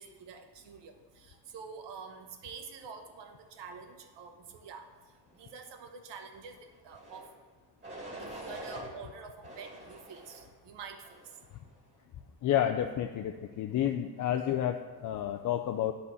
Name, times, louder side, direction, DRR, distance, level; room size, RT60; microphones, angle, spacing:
voice 1, 0.0-4.9 5.3-7.3 8.2-11.2, right 5 dB, 85° right, 6 dB, 1.2 m, -47 dB
sound 1, 6.9-7.3 7.8-8.9 9.4-10.5 11.0-11.5, right 1 dB, 25° right, 2.4 m, -45 dB
voice 2, 12.4-15.9, left 10 dB, 50° left, 5 dB, 0.4 m, -30 dB
11.0 x 4.2 x 7.1 m, 1.5 s
cardioid pair, 175°, 42 cm